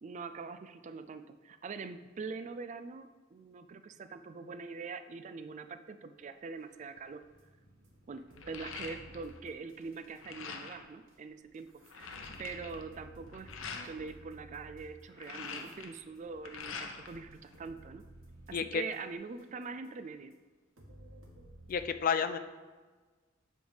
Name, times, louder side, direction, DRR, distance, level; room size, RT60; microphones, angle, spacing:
voice 1, 0.0-7.2 8.1-13.5 13.8-18.0 18.5-20.3, right 4 dB, 35° right, 10 dB, 0.3 m, -43 dB
sound 1, 6.9-10.2 11.1-11.2 11.5-19.9 20.3-20.4 20.8-21.8, right 1 dB, 85° right, 1.3 m, -55 dB
sound 2, 7.0-7.2 7.7-9.4 9.7-10.9 11.4-11.5 11.7-13.9 14.9-17.2 17.5-18.4, left 5 dB, 90° left, 0.8 m, -45 dB
voice 2, 18.5-18.8 21.7-22.4, left 6 dB, 45° left, 10 dB, 0.4 m, -30 dB
7.7 x 3.5 x 5.5 m, 1.3 s
head